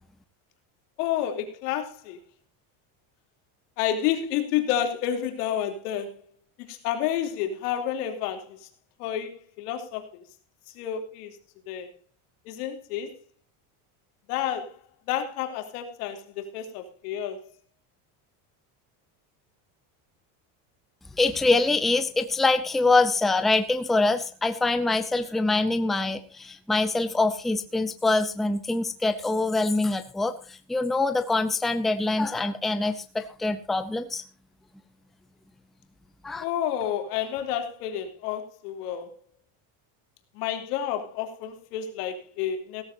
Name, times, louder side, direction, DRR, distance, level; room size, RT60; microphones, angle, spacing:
voice 1, 1.0-2.2 3.8-6.2 6.6-8.7 9.0-10.2 10.7-11.4 11.7-11.9 12.4-13.1 14.3-14.8 15.1-17.5 36.4-39.1 40.3-42.8, left 10 dB, 90° left, 6 dB, 3.2 m, -30 dB
voice 2, 21.2-34.2 36.2-36.4, left 3 dB, ahead, 9 dB, 0.6 m, -24 dB
16.5 x 14.0 x 2.7 m, 0.36 s
cardioid pair, 165°, 45 cm